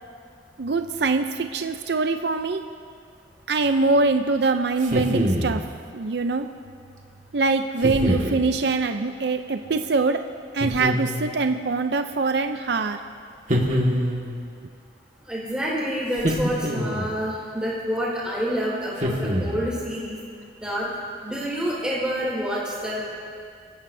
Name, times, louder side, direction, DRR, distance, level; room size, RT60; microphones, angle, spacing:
voice 1, 0.6-2.6 3.5-5.6 5.9-6.5 7.3-10.2 10.5-13.0, right 3 dB, 65° right, 7 dB, 0.6 m, -23 dB
sound 1, 4.8-5.6 7.8-8.4 10.6-11.4 13.5-14.4 16.2-17.2 19.0-19.8, equal, 45° right, 1.8 m, -25 dB
voice 2, 15.3-20.2 20.6-20.9 21.2-23.0, equal, 5° right, -7 dB, 4.7 m, -28 dB
27.0 x 14.5 x 2.7 m, 2.3 s
head